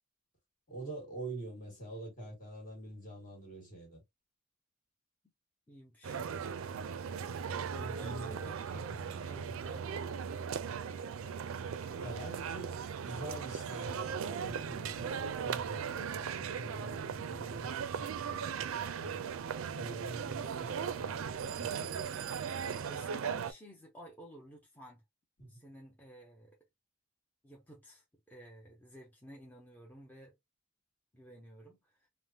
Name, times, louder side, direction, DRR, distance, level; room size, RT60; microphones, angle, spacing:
voice 1, 0.7-4.0 7.7-9.1 9.5-9.6 12.0-12.8 13.0-19.3 19.7-21.9 25.4-25.6, right 1 dB, 40° left, 1.7 m, -46 dB
voice 2, 5.7-6.2 8.0-10.0 22.7-25.0 25.4-26.6 27.4-30.3 31.1-32.1, right 1 dB, 10° left, 0.6 m, -53 dB
sound 1, 6.0-23.5, right 7 dB, 70° right, 0.4 m, -38 dB
3.4 x 2.0 x 2.7 m
head